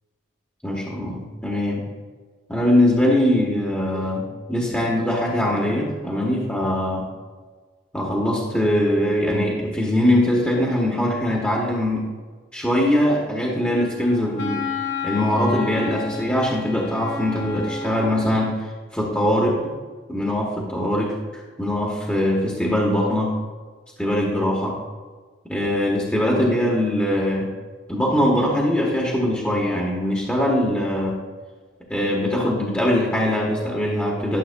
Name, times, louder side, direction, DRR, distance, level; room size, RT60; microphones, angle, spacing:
voice 1, 0.6-1.9 2.5-7.0 7.9-12.1 12.5-14.7 15.0-19.7 20.1-23.3 24.0-24.8 25.5-27.5 27.9-31.2 31.9-34.4, left 1 dB, 5° left, -4 dB, 1.1 m, -22 dB
Wind instrument woodwind instrument, 13.6-18.4, left 4 dB, 70° left, 1.7 m, -31 dB
12.0 x 7.4 x 2.2 m, 1.4 s
head